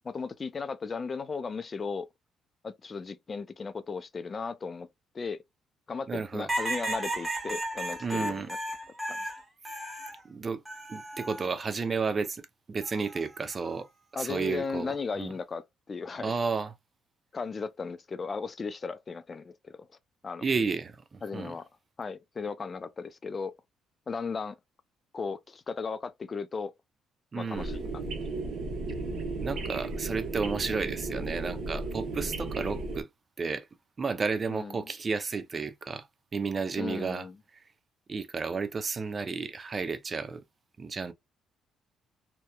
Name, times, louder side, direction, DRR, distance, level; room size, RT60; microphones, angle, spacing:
voice 1, 0.0-2.1 2.6-4.9 5.1-5.4 5.9-8.6 9.1-9.3 14.2-16.4 17.3-19.9 20.2-20.4 21.2-21.6 22.0-23.5 24.1-24.6 25.1-26.7 27.4-28.4 34.5-34.8 36.8-37.3, left 5 dB, 30° left, 0.4 m, -36 dB
voice 2, 6.1-6.5 8.0-8.5 10.2-10.6 10.9-12.4 12.7-15.3 16.2-16.7 20.4-21.6 27.3-27.7 29.4-33.1 33.4-33.7 34.0-36.1 36.3-37.3 37.5-37.6 38.1-40.4 40.8-41.1, right 4 dB, 30° right, 0.4 m, -32 dB
sound 1, 6.5-10.2 10.7-11.5 12.8-13.2, right 1 dB, 15° right, 1.1 m, -34 dB
sound 2, 27.5-33.0, right 3 dB, 65° right, 0.9 m, -34 dB
2.7 x 2.2 x 2.2 m
cardioid pair, 105°, 0 cm